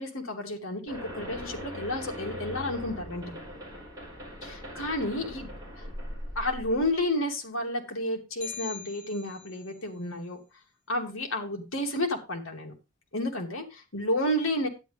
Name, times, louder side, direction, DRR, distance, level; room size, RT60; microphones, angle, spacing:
voice 1, 0.0-3.4 4.4-5.5 6.4-10.4 10.9-12.7 13.1-14.7, left 1 dB, 75° left, 3 dB, 2.5 m, -31 dB
sound 1, 0.9-6.9, equal, 15° right, 8.0 m, -40 dB
sound 2, 8.4-9.8, left 8 dB, 35° left, 3.7 m, -42 dB
11.5 x 9.9 x 3.4 m, 0.27 s
head